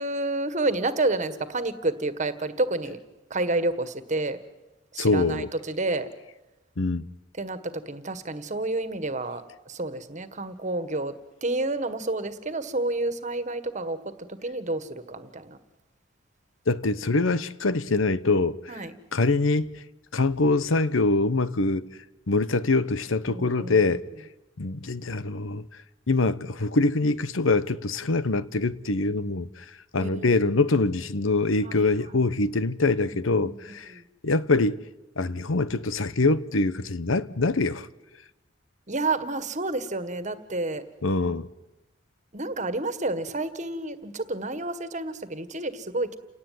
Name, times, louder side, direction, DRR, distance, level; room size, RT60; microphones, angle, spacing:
voice 1, 0.0-3.0 3.3-4.4 4.9-6.1 7.4-11.1 11.4-15.6 18.7-18.9 23.3-23.8 30.0-30.6 31.6-32.2 33.0-33.6 33.9-34.0 38.9-40.8 42.3-46.2, right 2 dB, 40° right, 1.7 m, -30 dB
voice 2, 5.0-5.5 6.8-7.1 16.7-18.7 19.1-19.7 20.1-21.9 22.3-24.0 24.6-25.6 26.1-29.6 29.9-33.9 34.2-34.8 35.2-37.9 41.0-41.5, left 3 dB, 90° left, 1.0 m, -24 dB
29.5 x 18.5 x 9.5 m
head